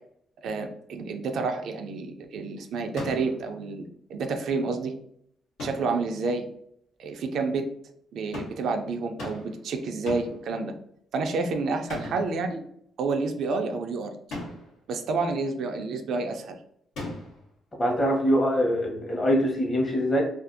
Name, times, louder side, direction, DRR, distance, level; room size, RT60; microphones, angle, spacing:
voice 1, 0.4-4.9 5.6-6.5 7.0-7.6 8.1-10.7 11.1-12.6 13.0-14.1 14.9-16.6, right 4 dB, 70° right, 5 dB, 0.3 m, -29 dB
sound 1, 3.0-3.4 5.6-6.0 8.3-8.7 9.2-9.6 10.1-10.4 11.9-12.4 14.3-14.7 16.9-17.5, left 2 dB, 90° left, 1.0 m, -37 dB
voice 2, 17.8-20.2, equal, 30° left, 0 dB, 0.9 m, -23 dB
2.5 x 2.3 x 2.5 m, 0.69 s
cardioid pair, 90°, 0 cm